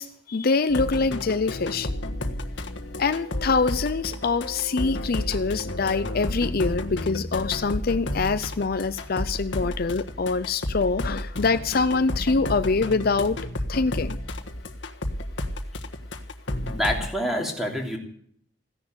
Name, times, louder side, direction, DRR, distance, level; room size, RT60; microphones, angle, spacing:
voice 1, 0.0-1.9 3.0-13.4 13.7-14.2, left 4 dB, 55° left, 12 dB, 0.6 m, -25 dB
sound 1, 0.7-17.1, left 1 dB, 80° left, 1.5 m, -32 dB
voice 2, 16.6-18.0, equal, ahead, 1 dB, 3.1 m, -27 dB
15.5 x 10.5 x 7.9 m, 0.63 s
head